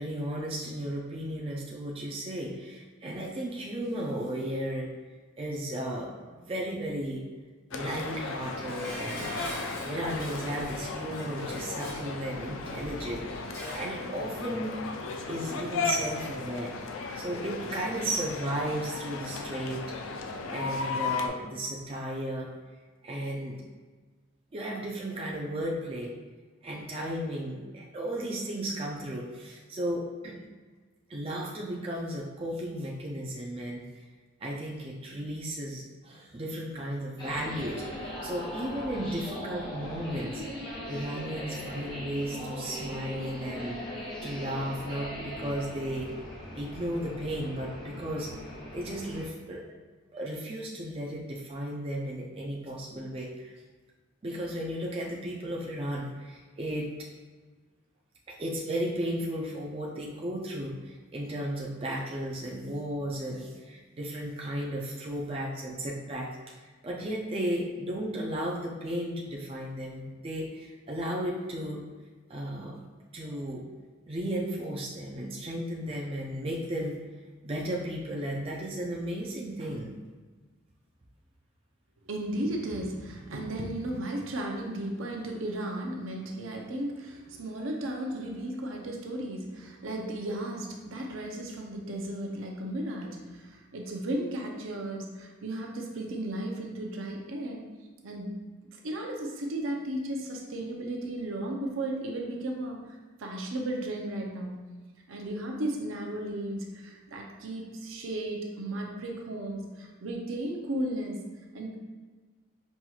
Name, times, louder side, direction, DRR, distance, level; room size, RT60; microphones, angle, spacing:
voice 1, 0.0-4.9 5.4-7.2 7.7-14.8 15.3-19.8 20.5-22.5 23.0-23.6 24.5-26.1 26.6-30.4 31.1-33.9 34.4-40.4 40.9-43.8 44.2-46.1 46.5-48.3 48.7-49.7 50.1-53.5 54.2-56.9 58.3-71.8 72.3-72.8 73.1-73.6 74.1-77.0 77.4-79.9, right 1 dB, 25° right, -2 dB, 0.4 m, -34 dB
sound 1, 7.7-21.3, left 4 dB, 70° left, 0.4 m, -36 dB
Dishes pots and pans, 8.7-14.0 14.3-14.4, equal, 45° left, 1.2 m, -42 dB
sound 2, 37.2-49.2, left 1 dB, 20° left, 0.7 m, -39 dB
voice 2, 82.0-97.6 98.0-98.4 98.7-102.8 103.2-104.6 105.1-111.2 111.5-111.7, right 1 dB, 75° right, 1 dB, 0.6 m, -35 dB
5.4 x 3.0 x 2.3 m, 1.3 s
head